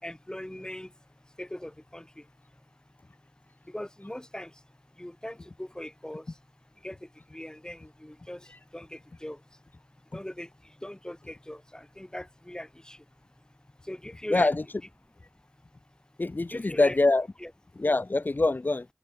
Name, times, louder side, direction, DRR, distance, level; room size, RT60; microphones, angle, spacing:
voice 1, 0.0-0.9 1.4-2.3 3.7-4.6 5.0-6.4 6.8-9.4 10.1-13.1 13.8-14.5 16.5-17.0 17.4-17.5, left 1 dB, 25° left, 5.5 m, -40 dB
voice 2, 14.3-14.6 16.2-17.3 17.8-18.9, left 2 dB, 85° left, 2.9 m, -24 dB
wide cardioid pair, 45°, 3 cm